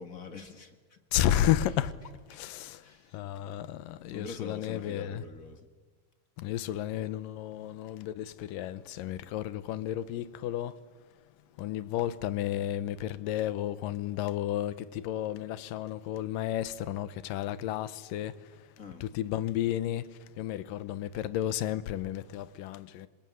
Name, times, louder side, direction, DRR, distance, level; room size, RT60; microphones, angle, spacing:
voice 1, 0.0-1.0 2.3-2.4 2.8-3.2 4.1-5.7 18.8-19.1, left 4 dB, 40° left, 1.3 m, -44 dB
voice 2, 1.1-1.9 2.3-2.8 3.1-5.2 6.4-10.7 11.6-18.3 19.0-20.0 20.4-23.1, left 12 dB, 85° left, 2.6 m, -32 dB
26.5 x 20.5 x 9.4 m
omnidirectional pair, 3.8 m